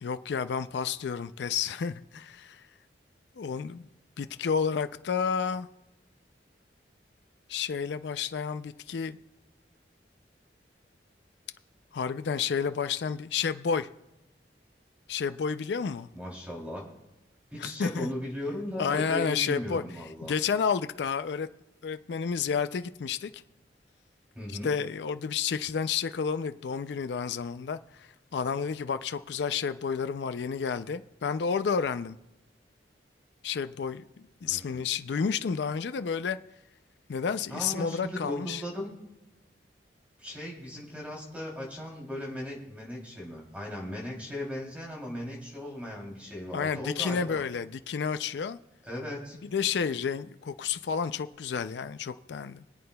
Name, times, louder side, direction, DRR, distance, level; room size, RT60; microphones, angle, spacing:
voice 1, 0.0-2.6 3.4-3.9 4.2-5.7 7.5-9.2 11.9-13.9 15.1-16.1 17.6-18.1 18.8-19.8 20.2-21.5 21.8-23.3 24.6-32.2 33.4-36.4 37.1-38.6 46.5-48.6 49.5-52.6, left 6 dB, 75° left, 11 dB, 0.4 m, -30 dB
voice 2, 16.1-16.8 17.5-20.3 24.3-24.7 34.4-34.8 37.5-38.9 40.2-47.4 48.8-49.4, left 1 dB, 10° right, -3 dB, 3.0 m, -37 dB
24.5 x 8.6 x 2.3 m, 0.95 s
head